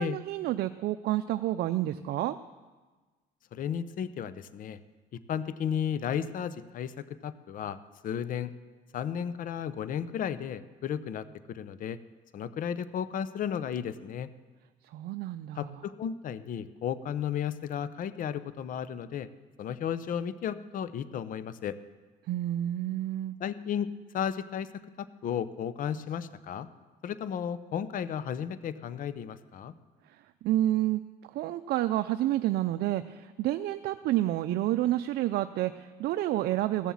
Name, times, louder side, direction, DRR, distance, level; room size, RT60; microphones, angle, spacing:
voice 1, 0.0-2.4 14.9-15.7 22.3-23.4 30.1-31.0 31.3-36.9, right 14 dB, 70° right, 10 dB, 0.5 m, -29 dB
voice 2, 3.5-4.8 5.1-8.5 8.9-12.0 12.3-14.3 15.6-19.3 19.6-21.8 23.4-24.7 25.0-26.7 27.0-29.7, left 8 dB, 55° left, 14 dB, 0.7 m, -34 dB
15.0 x 7.2 x 7.2 m, 1.3 s
cardioid pair, 110°, 17 cm